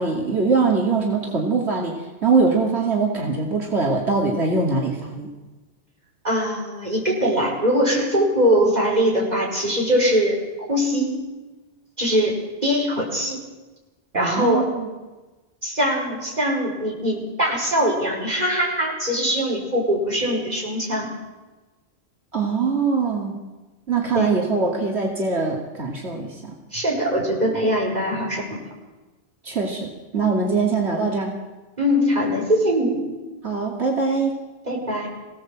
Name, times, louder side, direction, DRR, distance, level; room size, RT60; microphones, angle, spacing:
voice 1, 0.0-1.9 2.2-5.3 14.1-14.9 22.3-23.4 23.9-26.4 29.4-31.3 33.4-34.3, right 4 dB, 80° right, -1 dB, 2.8 m, -22 dB
voice 2, 6.2-10.4 10.7-11.1 12.0-12.4 12.6-13.4 14.1-14.6 15.6-21.1 24.2-24.3 26.7-28.6 31.8-33.2 34.6-35.1, equal, 40° right, -1 dB, 5.5 m, -22 dB
24.5 x 17.0 x 7.7 m, 1.2 s
omnidirectional pair, 1.1 m